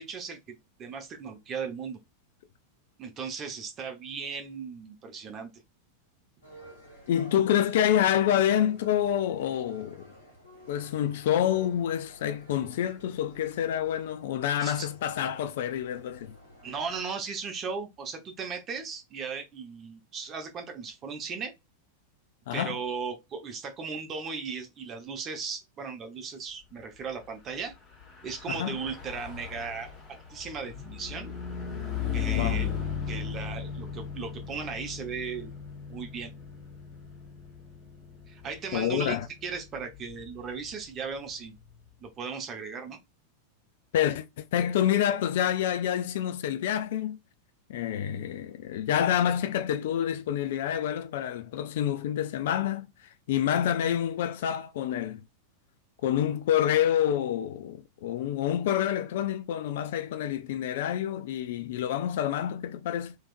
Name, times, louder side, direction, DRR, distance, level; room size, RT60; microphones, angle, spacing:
voice 1, 0.0-2.0 3.0-5.5 14.6-14.9 16.6-21.5 22.5-27.7 28.2-31.3 32.1-32.7 33.1-35.5 35.9-36.3 38.3-41.5 42.0-43.0, right 5 dB, 30° right, 1.0 m, -37 dB
sound 1, 6.4-17.1, equal, 70° left, 1.5 m, -53 dB
voice 2, 7.1-10.1 10.7-16.3 22.5-22.8 28.5-28.8 32.3-32.6 38.7-39.3 43.9-47.2 47.7-52.9 53.3-55.2 56.0-63.2, left 10 dB, 55° left, 0.4 m, -27 dB
Car passing by / Truck, 27.9-41.6, left 7 dB, 35° left, 2.1 m, -37 dB
3.3 x 3.1 x 2.5 m
figure-of-eight pair, 90°, 0 cm